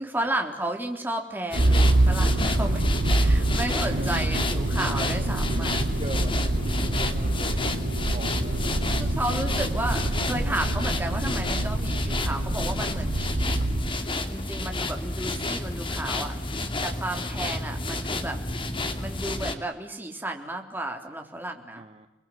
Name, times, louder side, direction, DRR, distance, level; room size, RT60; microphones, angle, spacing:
voice 1, 0.0-5.7 6.2-6.4 9.0-13.7 14.3-18.4 19.0-21.8, right 1 dB, 10° right, 3 dB, 3.6 m, -33 dB
sound 1, 1.5-19.5, left 2 dB, 30° left, 2.6 m, -30 dB
Motor vehicle (road), 1.5-13.9, right 2 dB, 80° right, 1.1 m, -26 dB
voice 2, 3.8-4.2 5.4-7.9 8.1-8.9 14.4-14.6 21.7-22.1, right 1 dB, 35° right, 6 dB, 1.6 m, -41 dB
29.5 x 21.5 x 9.3 m, 0.93 s
head